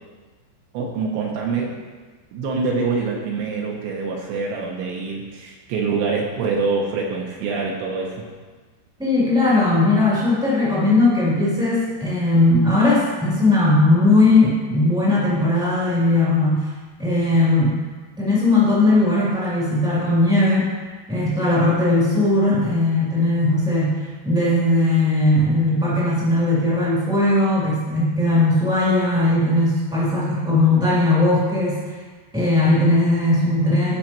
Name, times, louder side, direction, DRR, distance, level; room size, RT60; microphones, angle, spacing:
voice 1, 0.7-1.8 2.3-8.3, right 4 dB, 80° right, -1 dB, 3.0 m, -25 dB
voice 2, 9.0-16.7 17.0-17.8 18.2-20.7 21.1-32.0 32.3-34.0, left 2 dB, 5° right, -9 dB, 0.8 m, -18 dB
16.0 x 5.6 x 3.0 m, 1.4 s
omnidirectional pair, 5.4 m